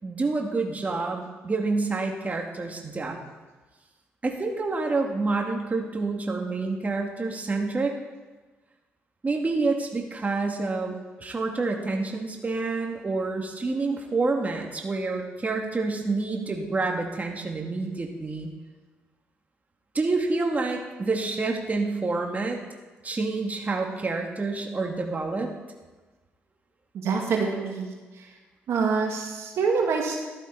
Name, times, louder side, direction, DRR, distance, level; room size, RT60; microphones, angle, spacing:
voice 1, 0.0-3.2 4.2-8.0 9.2-18.5 19.9-22.6 23.0-25.5, right 3 dB, 35° right, 1 dB, 2.5 m, -28 dB
voice 2, 26.9-28.3 28.7-30.2, right 5 dB, 70° right, 0 dB, 2.2 m, -26 dB
14.0 x 12.0 x 4.2 m, 1.3 s
supercardioid pair, 55°, 5 cm